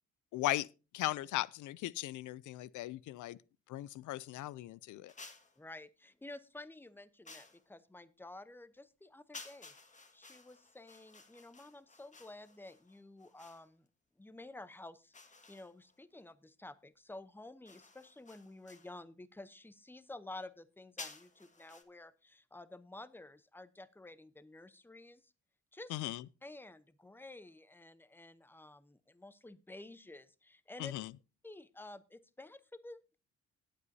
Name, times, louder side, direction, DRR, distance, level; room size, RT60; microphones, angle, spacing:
voice 1, 0.3-0.7 0.9-3.4 3.7-5.1 25.9-26.2 30.8-31.1, left 16 dB, 80° left, 0.5 m, -37 dB
sound 1, 5.1-5.6 7.2-7.7 9.3-13.7 15.1-16.0 17.7-18.9 21.0-21.8, left 3 dB, 25° left, 1.8 m, -54 dB
voice 2, 5.6-13.9 14.2-25.3 25.7-25.9 26.4-30.9 31.4-33.2, left 2 dB, 5° left, 0.8 m, -52 dB
19.0 x 8.3 x 2.7 m
cardioid pair, 90°, 30 cm